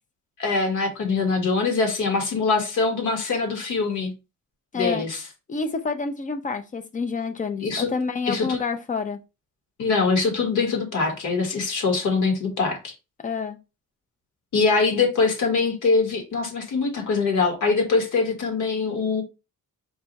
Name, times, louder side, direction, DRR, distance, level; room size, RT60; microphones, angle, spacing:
voice 1, 0.4-4.1 4.7-5.2 7.6-7.9 8.3-8.6 9.8-12.9 14.5-19.2, left 4 dB, 65° left, 1.5 m, -23 dB
voice 2, 4.7-5.0 5.5-9.2 13.2-13.6, left 4 dB, 25° left, 0.5 m, -28 dB
4.6 x 2.3 x 4.0 m
wide cardioid pair, 170°, 32 cm